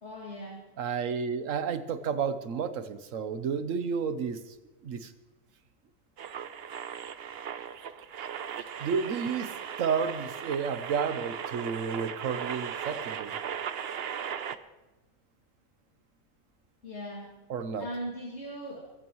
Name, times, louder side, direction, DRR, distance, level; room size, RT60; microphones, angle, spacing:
voice 1, 0.0-0.6 16.8-17.3 17.8-18.8, equal, 55° left, -3 dB, 2.8 m, -38 dB
voice 2, 0.8-4.4 4.8-5.1 8.8-13.4 17.5-17.9, right 6 dB, 70° right, 11 dB, 1.3 m, -31 dB
sound 1, 6.2-14.6, right 8 dB, 55° right, 0.8 m, -37 dB
22.5 x 14.0 x 3.1 m, 1.1 s
omnidirectional pair, 1.4 m